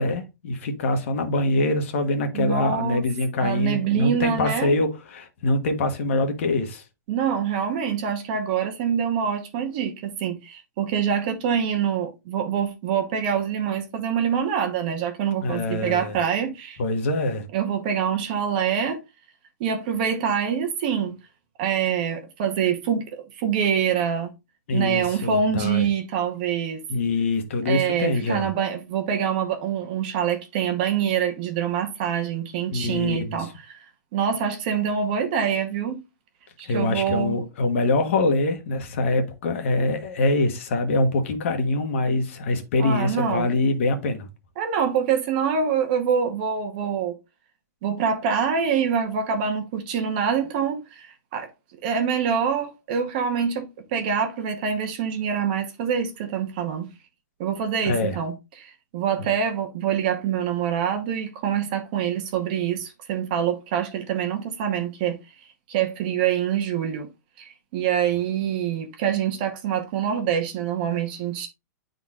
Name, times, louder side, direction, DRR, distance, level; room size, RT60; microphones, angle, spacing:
voice 1, 0.0-6.8 15.4-16.2 16.8-17.5 24.7-25.9 26.9-28.5 32.7-33.5 36.6-44.3 57.8-58.2 59.2-59.3, left 2 dB, 45° left, 1.2 m, -24 dB
voice 2, 2.3-3.0 3.4-4.7 7.1-16.8 17.5-19.0 19.6-21.2 21.6-24.3 24.7-26.8 27.6-33.8 34.1-36.0 36.6-37.4 42.8-43.5 44.6-47.2 47.8-51.5 51.8-56.9 57.4-65.2 65.7-67.1 67.4-71.5, right 7 dB, 30° right, 1.0 m, -25 dB
10.5 x 3.9 x 2.4 m
hypercardioid pair, 175°, 9 cm